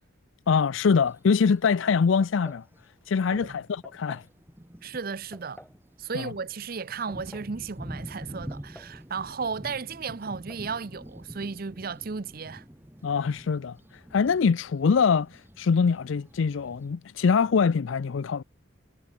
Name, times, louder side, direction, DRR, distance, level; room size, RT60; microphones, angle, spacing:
voice 1, 0.5-2.6 3.1-4.2 6.1-6.3 13.0-18.4, left 5 dB, 70° left, 0.4 m, -24 dB
Thunder, 1.0-1.1 2.1-2.2 2.7-2.8 3.2-17.0, equal, 10° right, 1.3 m, -46 dB
sound 1, 2.2-2.7 3.8-4.3 5.3-5.8 6.8-7.6 8.5-9.0 9.3-9.4 10.3-10.7, equal, 5° left, 7.2 m, -50 dB
voice 2, 4.8-5.6 6.0-12.6, right 5 dB, 45° right, 0.6 m, -34 dB
head